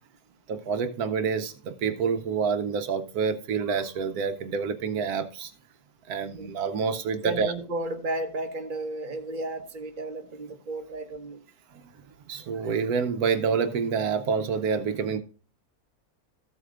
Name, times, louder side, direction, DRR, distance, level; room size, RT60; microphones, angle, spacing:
voice 1, 0.5-5.5 6.1-7.5 12.3-15.2, right 6 dB, 75° right, 1.2 m, -27 dB
voice 2, 7.2-11.4, right 2 dB, 35° right, 1.3 m, -33 dB
14.5 x 8.0 x 2.4 m
omnidirectional pair, 1.6 m